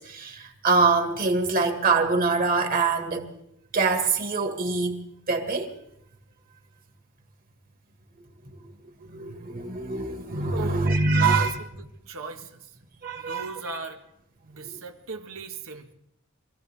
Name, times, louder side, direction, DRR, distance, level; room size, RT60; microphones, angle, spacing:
voice 1, 0.0-3.3 3.7-5.0 5.3-5.7 9.0-11.5 13.0-13.6, right 4 dB, 45° right, 2.0 m, -24 dB
voice 2, 10.5-11.5 12.1-12.6 13.2-14.0 14.4-15.9, right 4 dB, 85° right, 1.6 m, -37 dB
25.0 x 15.0 x 3.6 m
head